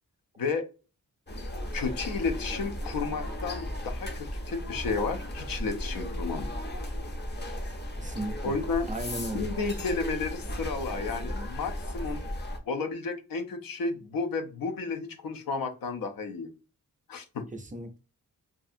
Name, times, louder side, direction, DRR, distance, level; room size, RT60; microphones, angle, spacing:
voice 1, 0.4-0.7 1.7-6.5 8.4-8.9 9.3-12.2 12.7-16.5 17.1-17.4, left 4 dB, 80° left, 7 dB, 0.5 m, -32 dB
sound 1, 1.3-12.6, equal, 30° left, 0.5 m, -35 dB
voice 2, 8.0-8.5 8.9-9.5 17.6-18.0, right 1 dB, 25° right, 6 dB, 0.4 m, -36 dB
2.6 x 2.4 x 2.5 m, 0.33 s
wide cardioid pair, 95°, 34 cm